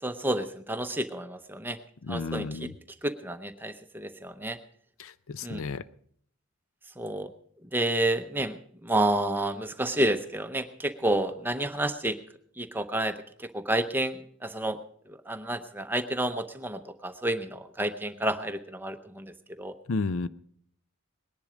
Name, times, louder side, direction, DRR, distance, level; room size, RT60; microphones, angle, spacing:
voice 1, 0.0-1.8 2.1-2.7 3.0-4.6 5.4-5.6 7.0-7.3 7.7-12.2 12.6-14.8 15.1-19.7, right 1 dB, 10° right, 8 dB, 0.7 m, -30 dB
voice 2, 2.0-2.7 5.0-5.8 19.9-20.3, left 4 dB, 70° left, 16 dB, 0.5 m, -32 dB
19.5 x 10.5 x 5.1 m, 0.63 s
head